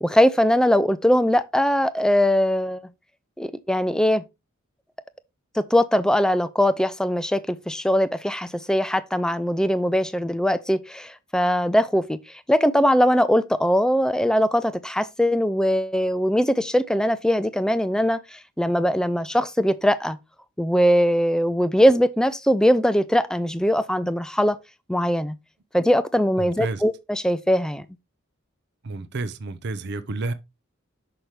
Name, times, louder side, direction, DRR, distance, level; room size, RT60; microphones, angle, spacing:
voice 1, 0.0-2.8 3.4-4.2 5.5-12.2 12.5-20.2 20.6-24.6 24.9-25.4 25.7-27.9, equal, 5° left, 0.4 m, -21 dB
voice 2, 26.4-26.8 28.8-30.3, right 3 dB, 55° right, 0.6 m, -30 dB
6.0 x 5.8 x 3.3 m
head